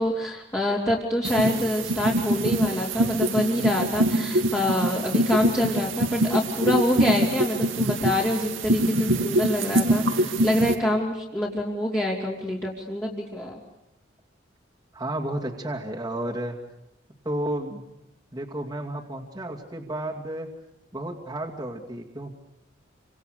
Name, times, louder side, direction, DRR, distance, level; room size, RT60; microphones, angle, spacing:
voice 1, 0.0-13.6, left 1 dB, 15° left, -5 dB, 3.2 m, -26 dB
sound 1, 1.2-10.7, right 1 dB, 85° right, 2.5 m, -24 dB
voice 2, 14.9-16.6 17.2-17.8 18.3-20.5 20.9-22.3, right 1 dB, 20° right, -2 dB, 2.5 m, -32 dB
28.5 x 25.5 x 6.7 m, 0.90 s
head